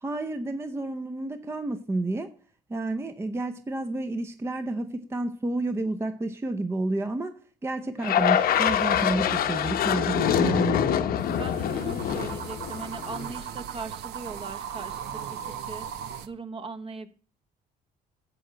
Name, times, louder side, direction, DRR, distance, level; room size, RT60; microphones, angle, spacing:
voice 1, 0.0-2.3 2.7-11.0, right 2 dB, 15° right, 0.6 m, -30 dB
sound 1, 8.0-13.4, left 9 dB, 60° left, 0.9 m, -25 dB
sound 2, 11.2-16.3, right 8 dB, 75° right, 0.9 m, -38 dB
voice 2, 11.3-17.1, right 4 dB, 35° right, 1.0 m, -40 dB
11.5 x 4.5 x 8.0 m
cardioid pair, 110°, 17 cm